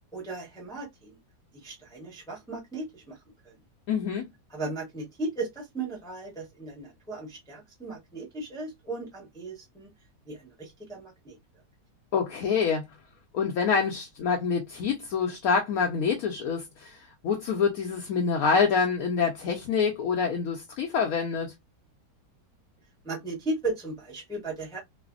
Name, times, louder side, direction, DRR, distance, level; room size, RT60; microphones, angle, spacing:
voice 1, 0.1-1.2 1.5-3.2 3.4-3.5 4.5-9.9 10.3-11.4 23.0-24.8, right 2 dB, 5° left, 0.6 m, -36 dB
voice 2, 3.9-4.3 12.1-12.9 13.3-21.5, left 5 dB, 70° left, 0.9 m, -26 dB
3.2 x 2.0 x 2.4 m
omnidirectional pair, 1.8 m